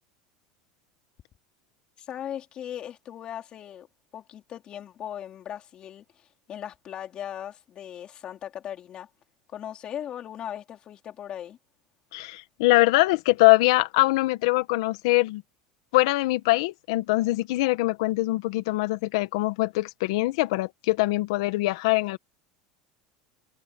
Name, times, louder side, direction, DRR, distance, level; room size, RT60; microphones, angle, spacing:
voice 1, 2.0-3.9 4.1-9.1 9.5-11.6, left 10 dB, 35° left, 4.4 m, -38 dB
voice 2, 12.1-15.4 15.9-22.2, left 20 dB, 75° left, 1.6 m, -23 dB
supercardioid pair, 135°, 3 cm